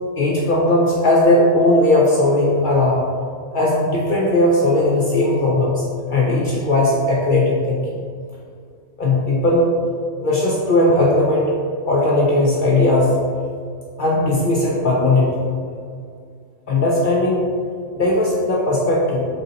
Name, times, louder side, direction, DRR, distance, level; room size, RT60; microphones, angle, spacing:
voice 1, 0.2-3.1 3.5-7.8 9.0-9.7 10.2-11.5 11.8-13.2 14.0-15.5 16.7-17.4 17.9-19.4, left 1 dB, 70° left, -4 dB, 0.4 m, -17 dB
3.7 x 2.7 x 3.9 m, 2.2 s
omnidirectional pair, 1.4 m